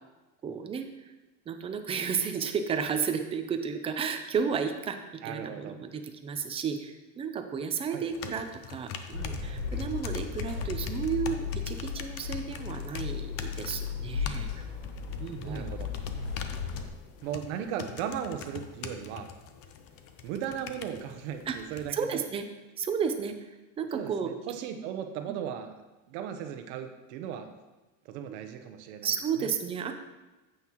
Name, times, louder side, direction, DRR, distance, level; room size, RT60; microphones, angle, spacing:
voice 1, 0.4-0.9 1.5-14.6 15.2-15.7 16.5-16.6 21.5-21.6 21.9-22.4 22.8-23.4 23.8-24.3 25.3-25.4 29.0-29.9, right 6 dB, 15° right, 6 dB, 0.4 m, -32 dB
voice 2, 5.2-5.8 7.9-8.3 15.4-15.9 17.2-19.3 20.2-22.2 23.9-25.7 26.1-27.5 28.0-29.1 29.4-29.5, right 9 dB, 65° right, 7 dB, 0.9 m, -37 dB
sound 1, 8.1-21.9, left 7 dB, 40° left, 0.6 m, -44 dB
sound 2, 9.1-16.9, left 6 dB, 90° left, 1.9 m, -35 dB
9.3 x 8.0 x 3.0 m, 1.1 s
cardioid pair, 155°, 37 cm